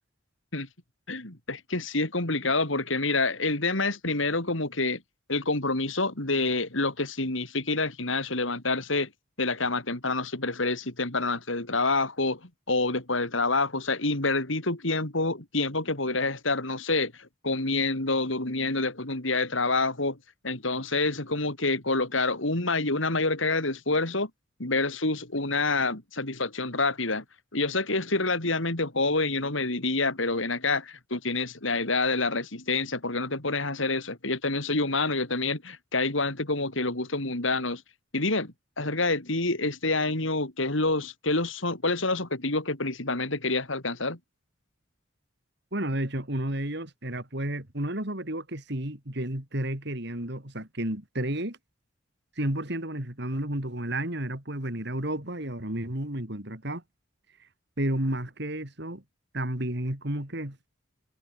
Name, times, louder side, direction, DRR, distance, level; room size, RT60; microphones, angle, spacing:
voice 1, 1.1-5.0 5.3-9.1 9.4-20.2 20.4-24.3 24.6-27.2 27.5-37.8 38.1-44.2, left 3 dB, 75° left, 4.0 m, -27 dB
voice 2, 45.7-51.6 52.4-56.8 57.8-59.0 59.3-60.6, right 1 dB, 55° right, 3.7 m, -31 dB
head